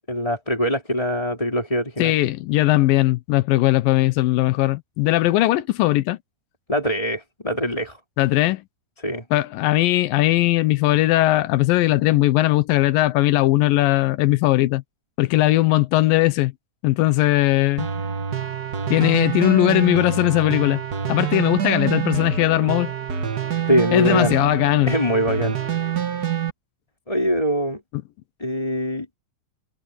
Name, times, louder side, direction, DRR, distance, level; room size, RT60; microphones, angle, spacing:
voice 1, 0.1-2.1 6.7-8.0 9.0-9.2 23.7-24.3 24.9-25.6 27.1-27.8 28.4-29.1, equal, 10° left, 3.0 m, -23 dB
voice 2, 2.0-6.2 8.2-8.6 9.3-14.8 15.2-16.5 16.8-17.9 18.9-20.8 21.1-22.9 23.9-24.9, left 17 dB, 90° left, 2.6 m, -19 dB
sound 1, 17.8-26.5, right 8 dB, 45° right, 1.2 m, -26 dB
omnidirectional pair, 4.0 m